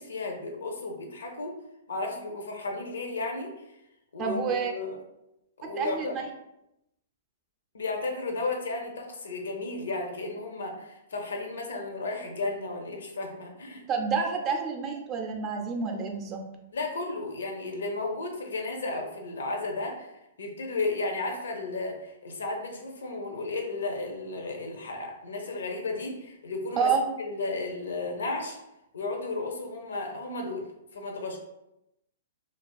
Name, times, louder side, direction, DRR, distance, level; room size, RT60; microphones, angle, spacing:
voice 1, 0.0-1.6 1.9-3.6 4.1-5.0 5.6-6.1 7.7-13.8 16.7-20.1 20.4-26.9 27.2-28.6 28.9-30.7 30.9-31.4, left 3 dB, 80° left, 2 dB, 0.5 m, -33 dB
voice 2, 4.2-4.7 5.8-6.3 13.9-16.4 26.8-27.1, right 5 dB, 30° right, 2 dB, 0.4 m, -28 dB
2.4 x 2.3 x 2.3 m, 0.87 s
hypercardioid pair, 130°, 0 cm